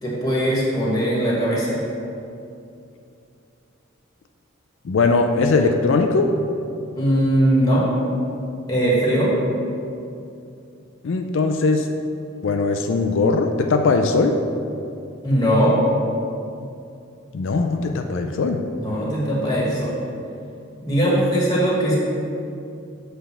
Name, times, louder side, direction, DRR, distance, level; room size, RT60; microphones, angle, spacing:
voice 1, 0.0-1.8 7.0-7.8 8.7-9.3 15.2-15.7 18.8-19.9 20.8-22.0, right 1 dB, 20° left, -5 dB, 1.4 m, -20 dB
voice 2, 4.9-6.3 11.0-11.9 12.4-14.4 17.3-18.7, left 3 dB, 70° left, 5 dB, 0.4 m, -20 dB
7.6 x 3.4 x 5.9 m, 2.6 s
head